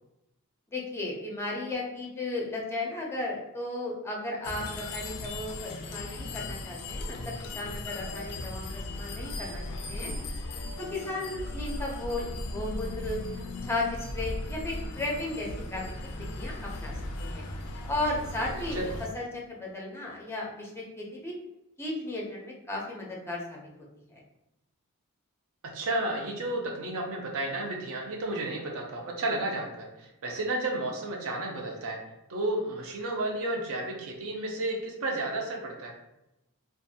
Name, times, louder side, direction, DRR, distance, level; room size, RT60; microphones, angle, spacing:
voice 1, 0.7-10.1 10.9-13.2 13.6-15.8 16.2-16.9 17.2-17.4 17.9-18.8 19.1-21.3 21.8-23.6 24.1-24.2, left 2 dB, 10° left, -2 dB, 0.5 m, -35 dB
sound 1, 4.4-19.1, left 2 dB, 80° left, 0.4 m, -37 dB
voice 2, 18.5-18.9 25.6-32.0 32.3-35.9, right 2 dB, 65° right, 1 dB, 0.6 m, -32 dB
2.5 x 2.3 x 2.7 m, 0.91 s
head